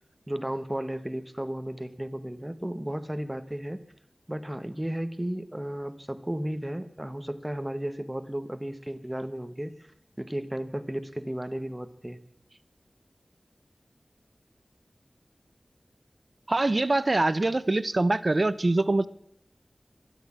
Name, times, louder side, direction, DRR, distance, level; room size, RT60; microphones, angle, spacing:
voice 1, 0.3-3.8 4.3-9.9 10.2-12.2, right 1 dB, 15° right, 10 dB, 1.3 m, -34 dB
voice 2, 16.5-19.1, right 2 dB, 50° right, 15 dB, 0.7 m, -24 dB
12.5 x 12.0 x 7.5 m, 0.73 s
wide cardioid pair, 50°, 0 cm